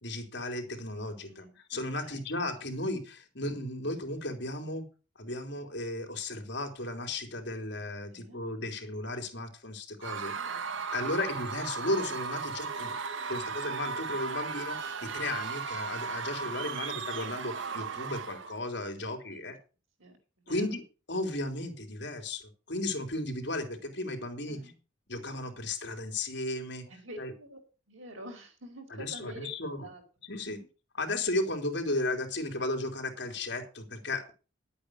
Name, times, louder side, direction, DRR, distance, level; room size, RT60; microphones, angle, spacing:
voice 1, 0.0-1.4 1.7-4.8 5.2-10.3 10.9-13.0 13.3-19.6 20.5-24.6 25.1-26.9 27.2-27.3 28.9-29.9 30.3-30.6 31.0-34.3, left 2 dB, 60° left, 4 dB, 3.5 m, -35 dB
voice 2, 1.2-1.6 2.0-2.3 8.1-8.4 10.1-11.1 19.3-19.4 20.0-20.7 24.5-24.7 26.9-27.6 27.9-29.5 29.8-30.0, right 1 dB, 85° right, 3 dB, 4.7 m, -48 dB
Screaming / Cheering / Crowd, 10.0-18.6, right 5 dB, 70° right, 0.8 m, -36 dB
11.5 x 8.7 x 6.5 m, 0.34 s
head